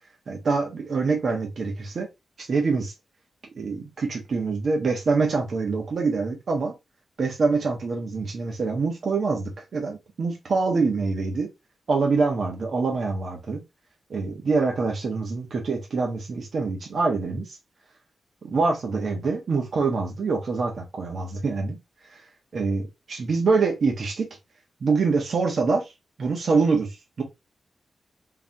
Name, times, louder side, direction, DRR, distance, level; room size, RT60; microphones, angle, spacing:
voice 1, 0.3-2.1 2.4-2.9 3.6-6.7 7.2-11.5 11.9-13.6 14.1-17.4 18.4-21.8 22.5-24.3 24.8-25.8 26.2-26.9 27.2-27.3, right 4 dB, 50° right, 1.3 m, -25 dB
4.0 x 3.5 x 2.7 m
wide cardioid pair, 175°, 0 cm